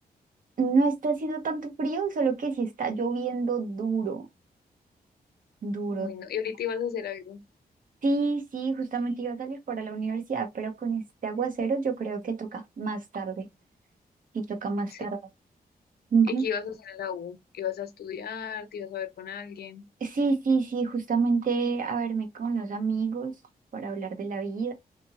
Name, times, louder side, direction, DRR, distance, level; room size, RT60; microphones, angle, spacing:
voice 1, 0.6-4.3 5.6-6.1 8.0-13.5 14.3-15.2 16.1-16.4 20.0-23.3 23.7-24.7, right 4 dB, 60° right, 0.8 m, -28 dB
voice 2, 5.9-7.4 14.9-15.0 16.3-19.8, left 8 dB, 80° left, 0.6 m, -34 dB
2.8 x 2.5 x 2.8 m
wide cardioid pair, 120°, 16 cm